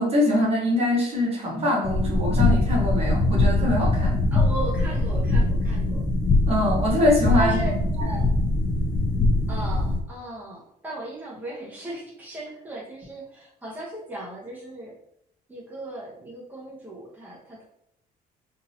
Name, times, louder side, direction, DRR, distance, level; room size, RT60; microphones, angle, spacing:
voice 1, 0.0-4.2 6.5-7.6, left 1 dB, 35° right, -3 dB, 1.3 m, -23 dB
sound 1, 1.8-10.0, left 2 dB, 25° left, 0.6 m, -22 dB
voice 2, 4.3-6.0 7.4-8.2 9.5-14.9 15.5-17.7, right 1 dB, 10° right, -5 dB, 1.1 m, -36 dB
3.7 x 2.6 x 2.8 m, 0.74 s
cardioid pair, 110°, 17 cm